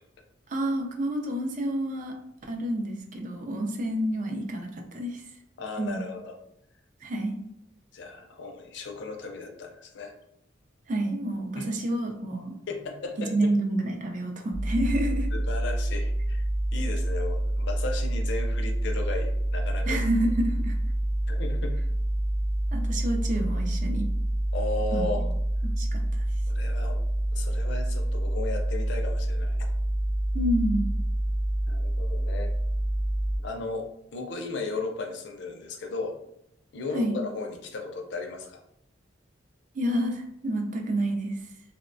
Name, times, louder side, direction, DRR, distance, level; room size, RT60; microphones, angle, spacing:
voice 1, 0.5-2.1 2.4-5.2 5.8-6.0 7.0-7.3 10.9-12.5 13.2-15.3 19.9-20.7 22.7-24.1 24.9-25.2 25.8-26.0 30.3-30.9 36.9-37.2 39.7-41.4, right 1 dB, 40° right, 2 dB, 0.4 m, -28 dB
voice 2, 5.6-6.3 7.9-10.1 11.6-11.7 12.7-13.5 15.3-16.4 16.7-20.0 21.3-21.8 24.5-25.3 26.5-27.0 27.3-29.7 31.7-32.5 33.4-33.9 34.1-36.2 36.7-38.6, left 3 dB, 65° left, 3 dB, 0.4 m, -35 dB
sound 1, 14.5-33.4, right 1 dB, 10° left, 0.5 m, -27 dB
2.8 x 2.1 x 2.5 m, 0.78 s
head